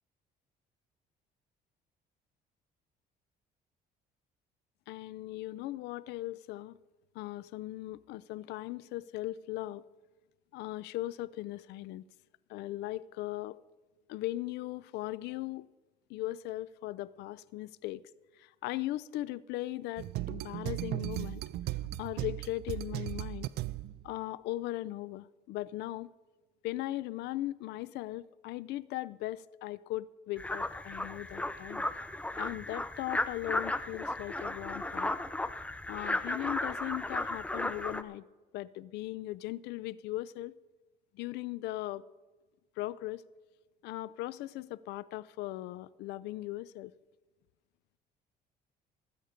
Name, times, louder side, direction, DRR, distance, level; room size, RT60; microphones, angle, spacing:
voice 1, 4.9-6.8 7.1-9.8 10.5-12.0 12.5-13.6 14.1-15.7 16.1-18.0 18.4-21.4 22.0-23.5 24.0-26.1 26.6-31.8 32.4-35.1 35.9-38.2 38.5-40.6 41.1-42.0 42.8-43.2 43.8-46.9, left 16 dB, 85° left, 0.5 m, -38 dB
sound 1, 20.0-24.2, right 16 dB, 75° right, 0.4 m, -37 dB
sound 2, 30.4-38.0, left 2 dB, 5° left, 0.6 m, -35 dB
19.0 x 8.1 x 5.1 m
cardioid pair, 110°, 17 cm